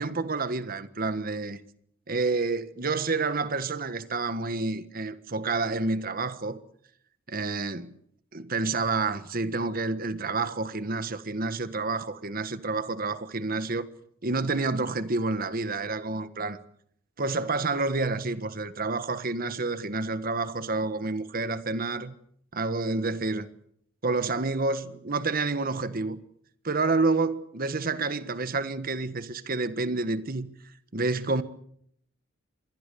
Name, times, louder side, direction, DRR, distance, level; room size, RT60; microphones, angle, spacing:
voice 1, 0.0-1.6 2.1-6.6 7.3-7.9 8.3-13.9 14.2-16.6 17.2-22.1 22.5-23.5 24.0-26.2 26.6-30.5 30.9-31.4, right 3 dB, 45° right, 1.5 m, -29 dB
26.0 x 21.0 x 7.0 m
head